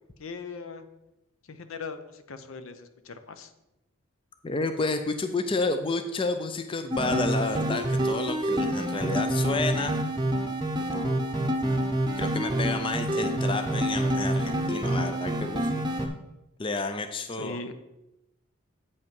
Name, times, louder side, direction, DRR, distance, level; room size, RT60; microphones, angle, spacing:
voice 1, 0.2-0.8 1.5-3.5 17.4-17.7, left 4 dB, 70° left, 9 dB, 0.7 m, -39 dB
voice 2, 4.4-9.9 10.9-11.2 12.2-15.8 16.6-17.6, left 3 dB, 25° left, 8 dB, 0.4 m, -30 dB
sound 1, 6.9-16.1, right 1 dB, 20° right, 0.7 m, -27 dB
8.2 x 5.4 x 5.3 m, 0.92 s
head